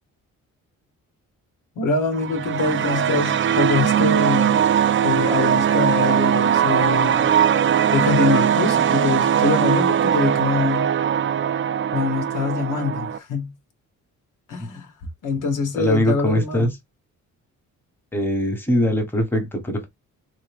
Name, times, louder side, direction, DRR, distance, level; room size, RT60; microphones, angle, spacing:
voice 1, 1.8-4.6 5.0-7.3 7.9-10.9 11.9-13.5 14.5-14.9 15.2-16.7, left 4 dB, 85° left, 1.4 m, -24 dB
sound 1, 2.1-13.2, right 9 dB, 40° right, 0.5 m, -20 dB
voice 2, 15.7-16.8 18.1-19.9, left 1 dB, 5° left, 1.3 m, -22 dB
3.8 x 2.8 x 3.4 m
cardioid pair, 100°, 31 cm